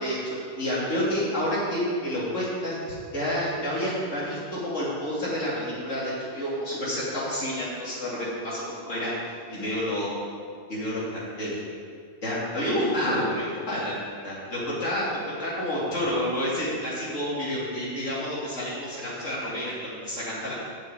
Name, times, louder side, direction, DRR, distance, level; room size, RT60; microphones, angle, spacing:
voice 1, 0.0-9.1 9.5-10.1 10.7-11.0 11.4-11.6 12.2-13.9 14.2-20.5, equal, 85° left, -8 dB, 3.6 m, -29 dB
8.1 x 6.9 x 7.8 m, 2.1 s
omnidirectional pair, 1.2 m